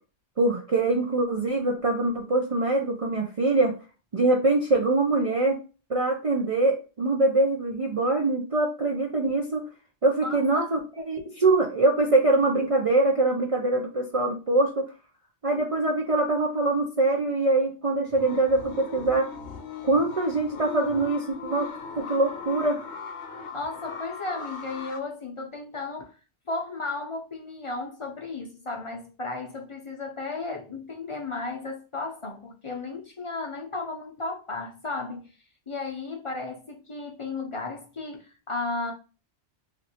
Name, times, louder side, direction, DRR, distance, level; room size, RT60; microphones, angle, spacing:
voice 1, 0.4-3.7 4.1-5.6 5.9-9.6 10.0-14.9 15.4-19.3 19.8-21.7 22.0-22.8, right 2 dB, 45° right, 0.5 m, -23 dB
voice 2, 10.2-10.6 23.5-26.1 26.5-35.3 35.7-38.9, left 3 dB, 35° left, 0.6 m, -34 dB
sound 1, 18.1-25.0, left 5 dB, 80° left, 0.9 m, -39 dB
3.0 x 2.5 x 2.7 m
omnidirectional pair, 1.1 m